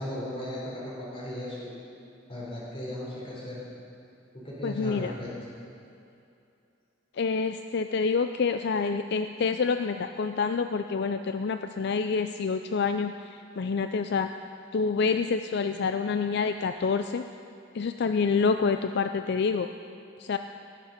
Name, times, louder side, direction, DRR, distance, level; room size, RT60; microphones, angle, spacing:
voice 1, 0.0-1.8 2.3-3.6 4.3-5.3, left 1 dB, 30° left, -6 dB, 3.6 m, -36 dB
voice 2, 4.6-5.1 7.2-13.3 13.6-14.3 14.7-17.2 17.7-19.7 20.2-20.4, left 5 dB, 60° left, 8 dB, 0.4 m, -27 dB
20.0 x 7.6 x 6.6 m, 2.6 s
head